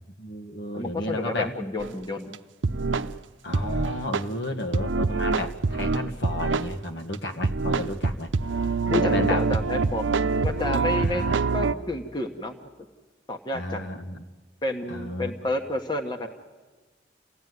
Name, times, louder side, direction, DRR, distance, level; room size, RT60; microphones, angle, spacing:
voice 1, 0.2-1.5 3.4-8.3 8.9-9.4 10.9-11.3 13.5-14.2 14.9-15.3, left 1 dB, 65° left, 4 dB, 1.9 m, -32 dB
voice 2, 0.7-2.4 8.9-11.3 11.5-12.5 13.3-13.9 14.6-16.3, left 2 dB, 25° left, 4 dB, 1.4 m, -30 dB
sound 1, 1.8-1.9 2.3-2.4 2.6-3.1 3.5-4.2 4.7-6.7 7.1-7.2 7.4-11.7, right 4 dB, 90° right, 0.7 m, -25 dB
29.0 x 16.5 x 9.6 m, 1.3 s
head